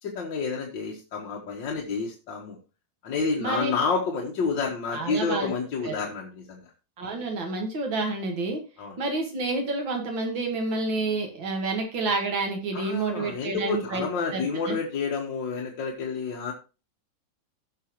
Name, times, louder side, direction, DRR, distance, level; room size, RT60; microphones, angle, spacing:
voice 1, 0.0-2.6 3.0-6.7 8.8-9.0 12.7-16.5, left 4 dB, 70° left, -1 dB, 1.9 m, -29 dB
voice 2, 3.4-3.7 4.9-5.5 5.8-5.9 7.0-8.6 9.0-14.0 14.3-14.8, right 3 dB, 80° right, 3 dB, 2.3 m, -29 dB
17.5 x 5.9 x 3.0 m, 0.31 s
omnidirectional pair, 2.1 m